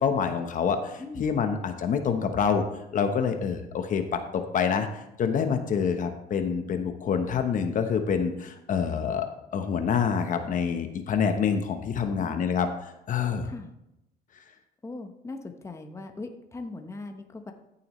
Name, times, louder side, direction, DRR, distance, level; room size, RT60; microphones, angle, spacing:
voice 1, 0.0-2.6 2.9-4.9 5.2-9.3 9.5-13.5, left 6 dB, 50° left, 7 dB, 1.0 m, -27 dB
voice 2, 1.0-1.4 12.0-12.5 13.4-13.7 14.8-17.5, left 2 dB, 15° left, 5 dB, 1.0 m, -40 dB
14.5 x 6.9 x 3.1 m, 0.85 s
cardioid pair, 110°, 17 cm